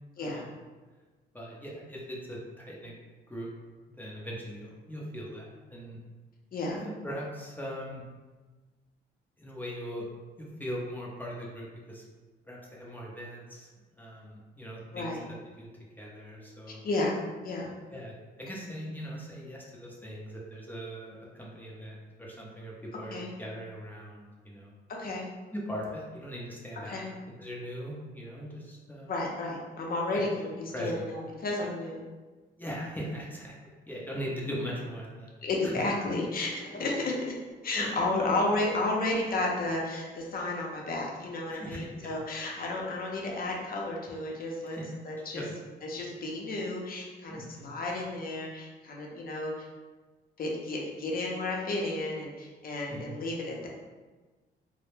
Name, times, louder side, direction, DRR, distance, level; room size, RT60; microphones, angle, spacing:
voice 1, 0.2-0.5 1.3-2.9 3.3-3.5 4.0-6.0 6.7-8.0 9.4-10.0 10.4-12.0 12.5-13.7 14.0-15.2 15.6-15.7 16.0-16.8 17.9-24.7 25.5-27.0 27.4-29.1 30.1-30.2 30.7-31.0 32.6-33.6 33.9-35.3 37.8-38.2 41.5-42.1 44.6-44.9 45.2-45.6 47.3-47.7 52.9-53.2, equal, 10° left, -4 dB, 0.5 m, -40 dB
voice 2, 16.8-17.2 17.4-17.7 23.1-23.3 25.0-25.3 26.8-27.0 29.1-32.0 35.4-37.4 37.6-44.8 45.0-45.4 45.8-49.7 50.4-53.7, left 2 dB, 50° left, -1 dB, 0.6 m, -32 dB
2.1 x 2.0 x 3.1 m, 1.3 s
cardioid pair, 90°, 20 cm